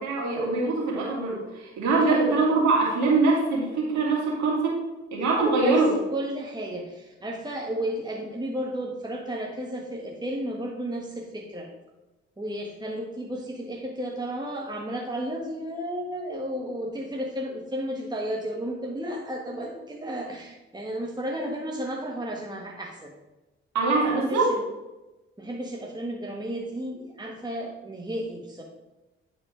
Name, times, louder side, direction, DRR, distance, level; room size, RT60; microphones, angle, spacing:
voice 1, 0.0-4.8 5.1-5.9 23.7-24.5, right 3 dB, 70° right, -3 dB, 2.8 m, -23 dB
voice 2, 1.9-2.4 5.6-11.7 12.4-23.1 24.2-24.6 25.4-28.6, right 1 dB, 15° right, -1 dB, 1.5 m, -33 dB
9.8 x 4.3 x 5.0 m, 1.1 s
hypercardioid pair, 45°, 30 cm